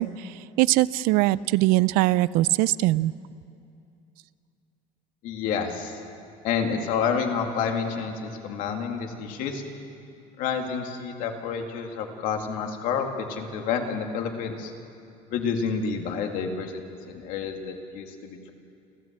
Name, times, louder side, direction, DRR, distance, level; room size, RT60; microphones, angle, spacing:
voice 1, 0.0-3.1, right 17 dB, 75° right, 19 dB, 0.5 m, -22 dB
voice 2, 5.2-6.0 6.4-9.6 10.4-14.7 15.3-18.5, left 6 dB, 65° left, 3 dB, 2.5 m, -29 dB
29.5 x 14.0 x 7.6 m, 2.6 s
cardioid pair, 160°, 15 cm